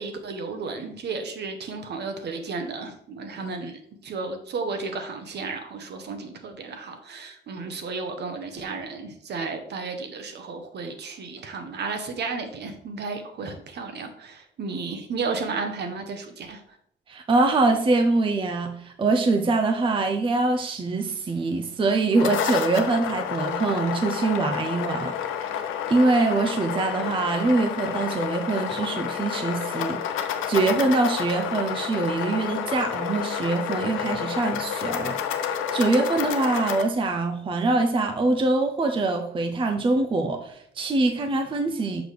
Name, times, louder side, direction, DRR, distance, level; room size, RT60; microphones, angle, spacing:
voice 1, 0.0-16.6, right 4 dB, 60° right, 6 dB, 1.0 m, -33 dB
voice 2, 17.1-25.2 25.9-42.0, right 3 dB, 25° right, 5 dB, 0.5 m, -24 dB
sound 1, 21.9-36.8, left 8 dB, 90° left, 0.6 m, -30 dB
6.1 x 5.0 x 3.2 m, 0.69 s
cardioid pair, 90°, 20 cm